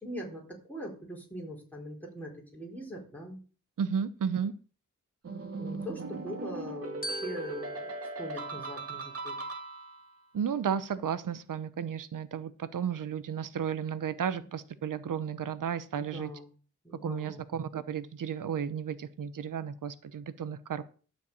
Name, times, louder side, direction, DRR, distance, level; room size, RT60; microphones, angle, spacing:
voice 1, 0.0-3.4 5.6-7.9 8.2-9.4 16.0-16.5 16.8-17.4, equal, 5° left, -2 dB, 4.3 m, -41 dB
voice 2, 3.8-4.5 10.3-16.3 17.0-20.8, right 7 dB, 90° right, 13 dB, 0.8 m, -33 dB
sound 1, 5.2-10.2, right 3 dB, 50° right, 1.2 m, -39 dB
Glockenspiel, 7.0-9.5, equal, 30° left, 2.1 m, -43 dB
12.5 x 4.6 x 8.4 m, 0.39 s
wide cardioid pair, 150°, 31 cm